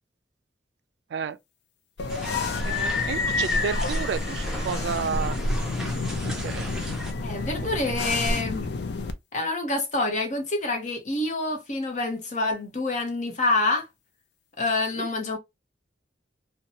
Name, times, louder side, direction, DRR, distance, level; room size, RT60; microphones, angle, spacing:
sound 1, 2.0-9.1, left 3 dB, 70° left, 0.4 m, -28 dB
sound 2, 2.1-7.1, equal, 5° right, 0.5 m, -37 dB
voice 1, 2.7-5.4 6.2-7.0 15.0-15.1, right 6 dB, 70° right, 0.3 m, -31 dB
voice 2, 7.2-8.7 9.3-13.9 14.6-15.4, left 2 dB, 40° left, 0.8 m, -27 dB
2.6 x 2.2 x 2.7 m
head